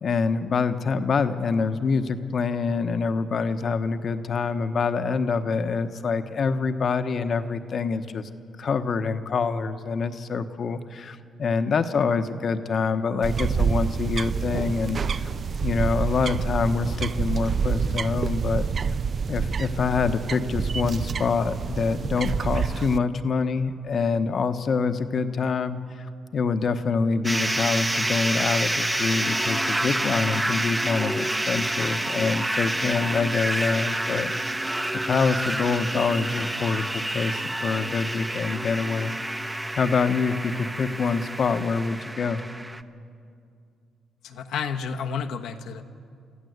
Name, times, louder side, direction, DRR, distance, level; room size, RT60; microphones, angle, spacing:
voice 1, 0.0-8.3 8.6-15.3 15.6-18.7 19.3-34.6 35.1-39.2 39.8-42.4, left 5 dB, 50° left, 9 dB, 1.1 m, -26 dB
sound 1, 13.2-23.0, right 6 dB, 45° right, 0.4 m, -27 dB
sound 2, 27.2-42.8, right 1 dB, 10° right, 0.8 m, -28 dB
voice 2, 44.2-45.8, left 6 dB, 80° left, 4 dB, 1.2 m, -31 dB
24.0 x 14.5 x 8.0 m, 2.3 s
cardioid pair, 90°, 0 cm